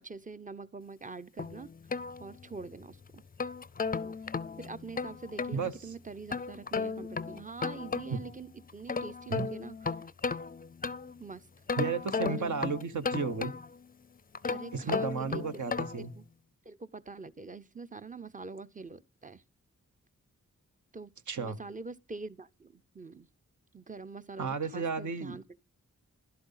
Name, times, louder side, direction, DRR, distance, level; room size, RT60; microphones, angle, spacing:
voice 1, 0.0-1.7 2.2-3.2 4.6-9.8 11.2-11.5 12.2-12.5 14.5-15.4 16.0-16.2 16.6-19.4 20.9-21.1 21.4-23.3 23.7-25.4, right 4 dB, 25° right, 0.6 m, -44 dB
sound 1, 1.4-2.7 3.2-5.6 6.3-8.3 8.7-11.2 11.7-13.9 14.4-16.1, left 5 dB, 30° left, 0.4 m, -35 dB
voice 2, 5.5-5.9 8.1-8.2 9.3-9.5 11.8-13.5 14.7-16.1 21.3-21.6 24.4-25.4, right 5 dB, 70° right, 0.9 m, -33 dB
11.5 x 7.7 x 5.5 m
cardioid pair, 55°, 31 cm